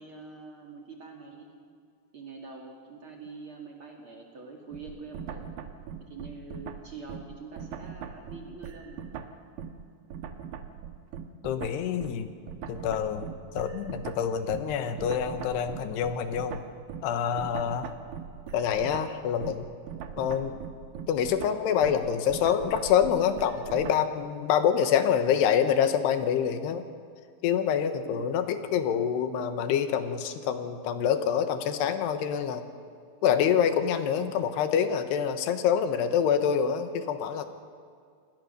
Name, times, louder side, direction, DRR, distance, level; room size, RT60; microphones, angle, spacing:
voice 1, 0.0-1.5 2.1-5.5 6.1-9.0 28.0-28.3, right 4 dB, 35° right, 0 dB, 2.7 m, -45 dB
sound 1, 4.7-9.8 10.1-24.1, right 7 dB, 70° right, 2.6 m, -41 dB
voice 2, 11.4-12.3 12.7-13.3 13.5-16.6 17.0-17.9 18.5-19.7 20.2-20.6 21.1-26.9 27.4-32.6 33.2-37.5, left 8 dB, 85° left, 9 dB, 3.2 m, -26 dB
28.0 x 20.0 x 6.7 m, 2.2 s
omnidirectional pair, 4.7 m